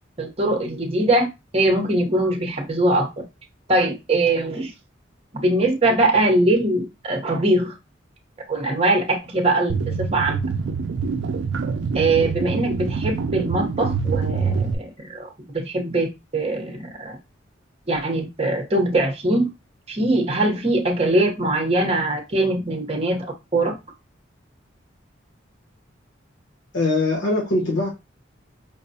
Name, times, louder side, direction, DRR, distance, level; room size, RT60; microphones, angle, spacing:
voice 1, 0.2-1.3 1.5-3.2 3.7-4.7 5.3-7.7 8.5-10.4 11.9-15.3 15.5-16.1 16.3-17.2 17.9-19.5 19.9-23.7, right 2 dB, 30° right, 2 dB, 0.8 m, -22 dB
sound 1, 9.7-14.7, right 5 dB, 70° right, 0.4 m, -25 dB
voice 2, 26.7-27.9, left 2 dB, 75° left, -2 dB, 1.0 m, -21 dB
5.2 x 2.1 x 2.7 m, 0.25 s
head